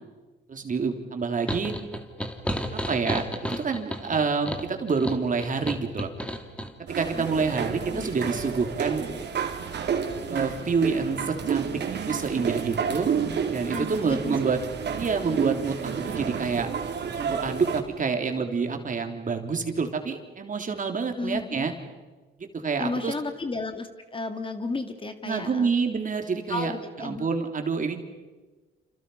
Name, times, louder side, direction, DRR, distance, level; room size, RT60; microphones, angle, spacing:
voice 1, 0.5-1.7 2.9-6.1 6.9-9.1 10.3-11.7 12.1-13.1 13.5-14.6 15.0-16.7 17.2-21.7 22.5-23.1 25.2-28.0, right 5 dB, 40° right, 4 dB, 3.5 m, -27 dB
sound 1, 1.5-6.7, equal, 5° left, 2.8 m, -32 dB
sound 2, 6.9-17.8, right 7 dB, 60° right, 3.7 m, -30 dB
voice 2, 7.1-8.4 13.7-14.4 21.2-21.7 22.8-25.7 26.5-27.3, left 3 dB, 25° left, 7 dB, 2.3 m, -34 dB
29.0 x 28.0 x 5.7 m, 1.3 s
cardioid pair, 90°, 20 cm